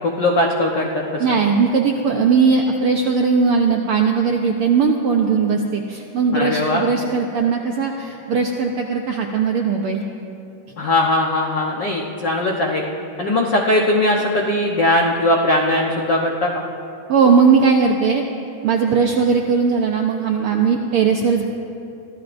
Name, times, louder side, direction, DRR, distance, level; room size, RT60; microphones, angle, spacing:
voice 1, 0.0-1.4 6.3-6.8 10.8-12.8 13.2-16.6, left 1 dB, 70° left, -1 dB, 1.0 m, -19 dB
voice 2, 1.2-10.0 17.1-18.2 18.6-21.4, right 5 dB, 75° right, 1 dB, 1.3 m, -18 dB
25.0 x 15.0 x 2.6 m, 2.6 s
omnidirectional pair, 3.4 m